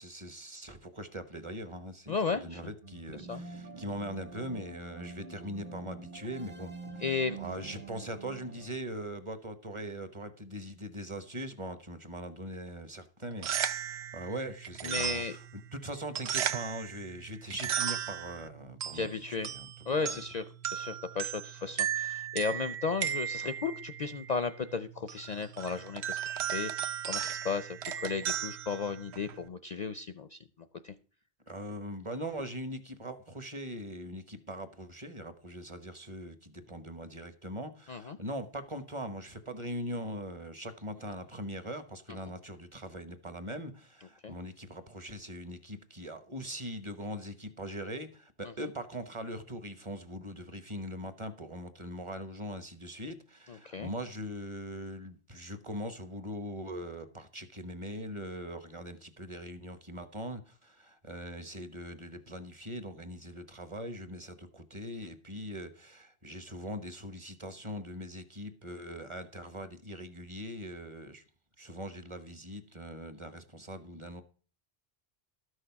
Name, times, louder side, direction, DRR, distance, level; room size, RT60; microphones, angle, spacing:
voice 1, 0.0-6.7 7.4-20.2 31.5-71.2 71.6-74.2, equal, 30° right, 1.1 m, -41 dB
voice 2, 2.1-2.6 3.2-3.4 7.0-7.4 14.8-15.4 18.9-19.5 19.9-30.4 30.8-30.9 37.9-38.2 44.2-44.4 48.4-48.5 53.5-53.9, left 4 dB, 45° left, 0.6 m, -35 dB
sound 1, 2.8-8.8, right 4 dB, 50° right, 1.3 m, -46 dB
sound 2, 13.2-29.5, right 9 dB, 75° right, 1.0 m, -36 dB
13.0 x 6.4 x 5.8 m
omnidirectional pair, 1.1 m